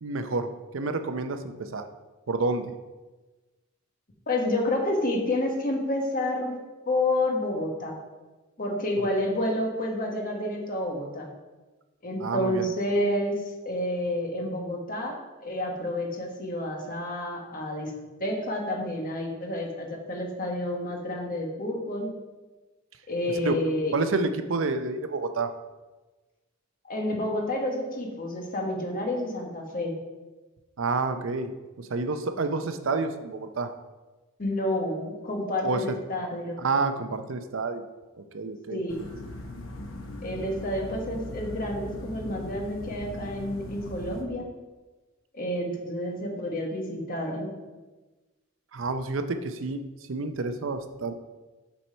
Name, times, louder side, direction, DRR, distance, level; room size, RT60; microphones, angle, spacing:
voice 1, 0.0-0.5 0.7-1.9 2.3-2.7 12.2-12.7 23.4-23.5 23.9-25.5 30.8-33.7 35.6-36.0 36.6-37.8 38.3-38.8 48.7-49.8 50.1-51.1, right 3 dB, 75° right, 8 dB, 0.6 m, -29 dB
voice 2, 4.3-6.6 6.9-8.0 8.6-11.3 12.0-17.9 18.2-22.1 23.1-23.9 26.8-29.9 34.4-36.6 38.7-39.0 40.2-44.4 45.3-47.5, left 1 dB, 45° left, 1 dB, 1.4 m, -29 dB
sound 1, 38.9-44.2, left 1 dB, 90° left, 0.9 m, -39 dB
7.0 x 4.5 x 5.5 m, 1.2 s
head